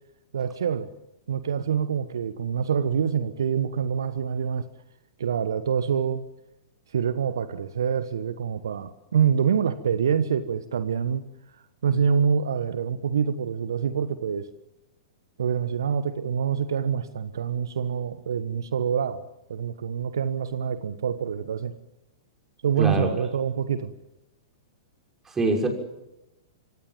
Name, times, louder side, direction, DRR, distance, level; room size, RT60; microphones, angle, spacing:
voice 1, 0.3-0.9 1.3-4.7 5.2-6.2 6.9-11.2 11.8-14.5 15.4-19.2 19.5-21.7 22.6-23.9, right 7 dB, 70° right, 12 dB, 1.2 m, -26 dB
voice 2, 22.8-23.1 25.3-25.7, right 2 dB, 15° right, 2 dB, 6.0 m, -24 dB
26.5 x 25.0 x 7.6 m, 0.93 s
figure-of-eight pair, 105°, 2 cm